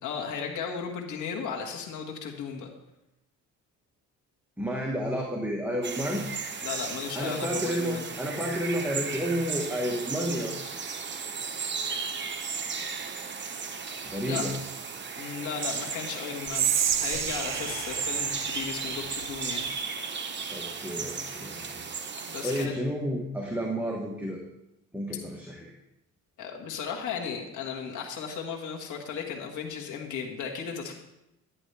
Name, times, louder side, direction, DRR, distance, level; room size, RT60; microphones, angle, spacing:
voice 1, 0.0-2.7 6.6-8.0 14.3-14.5 15.2-16.7 17.0-19.7 22.3-22.7 26.4-30.9, left 6 dB, 75° left, 0 dB, 1.7 m, -35 dB
voice 2, 4.6-6.2 7.1-10.6 14.0-14.6 20.5-21.8 22.4-24.4 24.9-25.7, equal, 5° right, -1 dB, 1.4 m, -31 dB
sound 1, 5.8-22.7, right 5 dB, 35° right, 1.1 m, -35 dB
Whispering, 16.5-19.7, right 9 dB, 60° right, 0.8 m, -30 dB
10.5 x 10.0 x 3.4 m, 0.87 s
cardioid pair, 90°, 30 cm